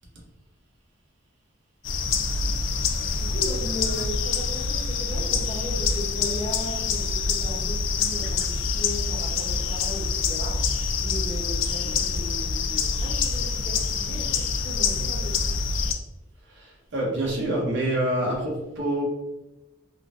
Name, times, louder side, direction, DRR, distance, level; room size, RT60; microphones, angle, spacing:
sound 1, 1.8-15.9, left 5 dB, 65° left, 0.3 m, -26 dB
voice 1, 3.1-15.7, equal, 20° left, -3 dB, 0.7 m, -37 dB
voice 2, 16.5-19.0, right 1 dB, 60° right, -2 dB, 0.8 m, -27 dB
3.6 x 2.5 x 2.4 m, 0.97 s
head